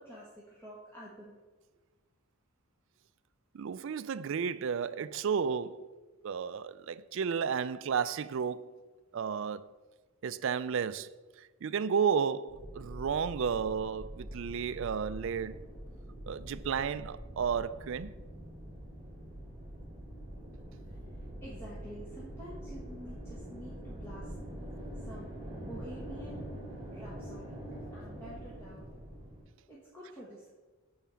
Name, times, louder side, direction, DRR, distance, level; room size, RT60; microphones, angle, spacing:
voice 1, 0.0-1.4 20.8-24.3 24.9-25.3 25.6-26.5 26.9-27.5 27.9-28.9 29.7-30.5, right 1 dB, 10° left, 1.4 m, -49 dB
voice 2, 3.5-5.9 6.2-8.8 9.1-9.7 10.2-11.1 11.4-15.6 16.3-18.1, right 6 dB, 55° right, 0.3 m, -32 dB
sound 1, 12.5-29.4, right 1 dB, 20° right, 2.0 m, -44 dB
7.4 x 4.7 x 7.0 m
head